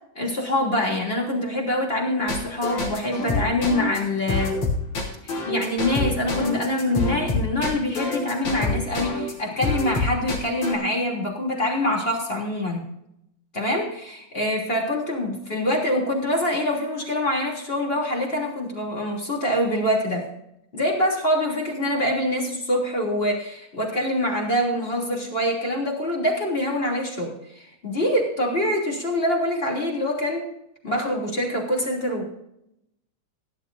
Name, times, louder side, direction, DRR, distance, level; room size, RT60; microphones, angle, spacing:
voice 1, 0.1-4.5 5.2-12.8 13.5-20.2 20.7-30.5 30.8-32.3, left 1 dB, 20° left, -1 dB, 3.1 m, -25 dB
sound 1, 2.3-9.3 9.6-10.8, left 3 dB, 65° left, 4.6 m, -26 dB
18.5 x 11.5 x 2.7 m, 0.80 s
omnidirectional pair, 3.6 m